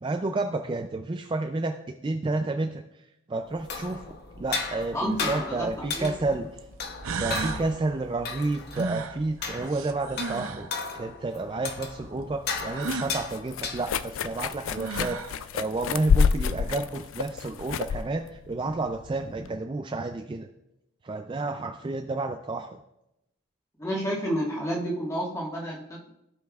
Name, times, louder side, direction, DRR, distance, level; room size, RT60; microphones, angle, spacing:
voice 1, 0.0-1.8 2.0-2.8 3.3-4.0 4.4-6.5 7.2-10.7 10.9-20.5 21.0-22.8, right 2 dB, 20° right, 5 dB, 0.3 m, -30 dB
sound 1, 3.5-14.2, left 4 dB, 45° left, 0.8 m, -36 dB
voice 2, 4.9-5.7 5.9-6.1 23.8-26.1, equal, 15° left, -3 dB, 1.5 m, -30 dB
sound 2, 5.5-5.6 6.6-6.7 7.0-7.7 8.7-10.7 12.7-13.2 14.4-14.5 14.7-15.4, right 4 dB, 70° right, 0.6 m, -33 dB
sound 3, 11.7-19.5, left 6 dB, 60° left, 0.3 m, -29 dB
16.0 x 5.4 x 2.3 m, 0.86 s
head